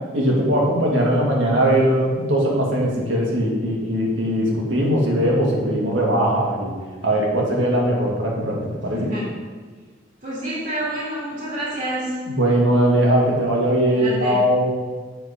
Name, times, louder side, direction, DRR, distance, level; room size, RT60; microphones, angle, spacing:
voice 1, 0.1-6.7 7.0-9.1 12.3-14.7, equal, 85° right, -3 dB, 1.8 m, -20 dB
voice 2, 8.9-9.3 10.2-12.2 14.0-14.4, right 1 dB, 45° right, -7 dB, 1.7 m, -28 dB
7.7 x 3.9 x 5.0 m, 1.4 s
head